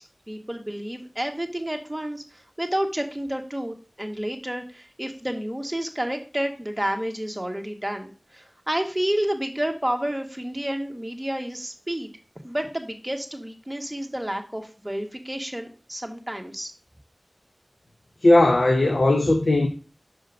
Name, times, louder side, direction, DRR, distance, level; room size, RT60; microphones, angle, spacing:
voice 1, 0.0-12.1 12.4-16.7, right 1 dB, 15° right, 1.6 m, -30 dB
voice 2, 18.2-19.7, left 2 dB, 90° left, 0.9 m, -18 dB
6.3 x 5.3 x 6.3 m
wide cardioid pair, 45°, 0 cm